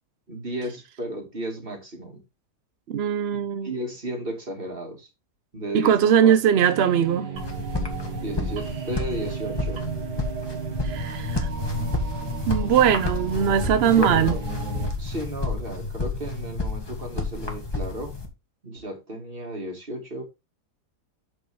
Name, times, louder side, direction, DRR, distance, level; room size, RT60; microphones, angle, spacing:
voice 1, 0.3-2.2 3.3-5.1 5.5-6.4 8.2-9.9 13.7-14.4 15.0-18.2 18.6-20.2, right 1 dB, 35° right, 2.6 m, -34 dB
voice 2, 2.9-3.7 5.7-7.3 10.8-11.5 12.5-14.4, right 9 dB, 65° right, 0.6 m, -20 dB
sound 1, 6.5-14.9, right 6 dB, 90° right, 2.2 m, -35 dB
sound 2, 7.4-18.3, left 2 dB, 15° left, 1.6 m, -30 dB
8.0 x 6.4 x 3.6 m
omnidirectional pair, 1.8 m